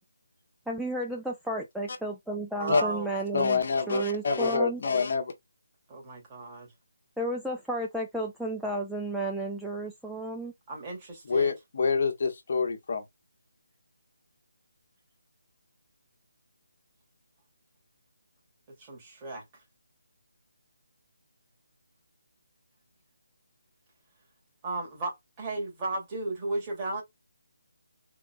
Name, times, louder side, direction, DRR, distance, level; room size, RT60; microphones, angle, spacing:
voice 1, 0.7-3.6 3.9-4.8 7.2-10.5, right 1 dB, ahead, 0.5 m, -32 dB
voice 2, 2.6-3.1 5.9-6.7 10.7-11.6 18.8-19.4 24.6-27.0, right 2 dB, 20° right, 2.4 m, -34 dB
voice 3, 3.3-5.3 11.3-13.0, left 4 dB, 50° left, 1.2 m, -26 dB
3.9 x 3.6 x 2.3 m
figure-of-eight pair, 160°, 0 cm